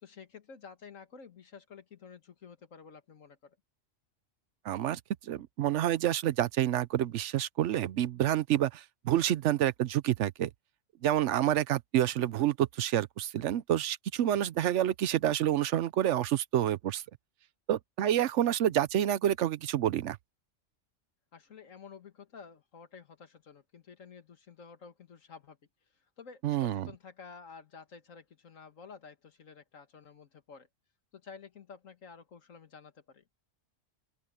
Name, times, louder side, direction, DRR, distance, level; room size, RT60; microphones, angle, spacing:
voice 1, 0.0-3.6 21.3-25.6 26.2-30.7 31.1-33.2, left 5 dB, 90° left, 2.0 m, -51 dB
voice 2, 4.6-10.5 11.0-17.0 17.7-20.2 26.4-26.9, right 11 dB, 70° right, 0.9 m, -28 dB
open air
omnidirectional pair, 1.3 m